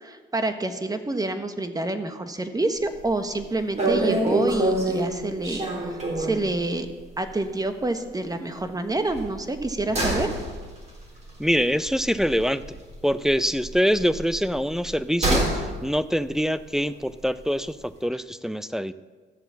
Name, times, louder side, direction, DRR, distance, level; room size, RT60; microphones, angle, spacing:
voice 1, 0.0-5.7 6.2-6.9 7.2-10.3, right 2 dB, 20° right, 8 dB, 1.2 m, -27 dB
sound 1, 2.9-3.2 3.4-3.5 3.8-6.5 6.9-7.0 7.3-7.4 9.0-13.0 13.2-15.7 16.0-16.1, right 1 dB, 35° right, 4.0 m, -26 dB
voice 2, 11.4-12.6 13.0-18.9, equal, ahead, 13 dB, 0.4 m, -24 dB
14.0 x 7.6 x 7.4 m, 1.4 s
cardioid pair, 90°, 20 cm